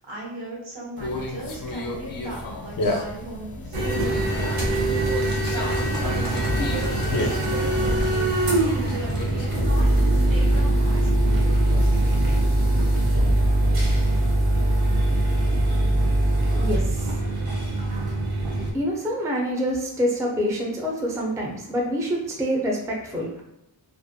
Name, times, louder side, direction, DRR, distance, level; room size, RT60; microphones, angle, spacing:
voice 1, 0.1-5.1 5.5-8.5 8.8-12.4, right 1 dB, 75° right, -3 dB, 1.1 m, -38 dB
Conversation, 1.0-9.8, left 2 dB, 50° left, 0.5 m, -32 dB
sound 1, 3.7-18.7, right 1 dB, 55° right, 0.8 m, -22 dB
voice 2, 16.5-17.3 18.7-23.4, equal, 5° right, -1 dB, 0.4 m, -26 dB
2.5 x 2.1 x 2.6 m, 0.81 s
wide cardioid pair, 85°, 45 cm